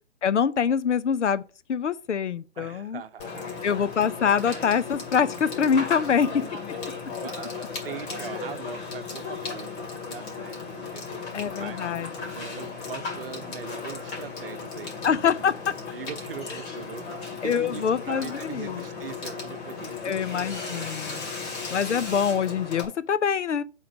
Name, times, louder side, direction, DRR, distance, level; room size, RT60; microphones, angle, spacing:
voice 1, 0.2-1.4 1.7-3.0 3.6-6.5 11.3-12.1 15.0-15.7 17.4-18.8 20.0-21.2 21.7-23.6, left 7 dB, 80° left, 0.7 m, -25 dB
voice 2, 2.6-3.5 7.2-15.6 15.9-21.8, right 8 dB, 55° right, 0.8 m, -42 dB
Water / Water tap faucet / Sink (filling or washing), 3.2-22.9, left 4 dB, 45° left, 2.3 m, -36 dB
6.2 x 3.9 x 6.1 m
hypercardioid pair, 145°, 35 cm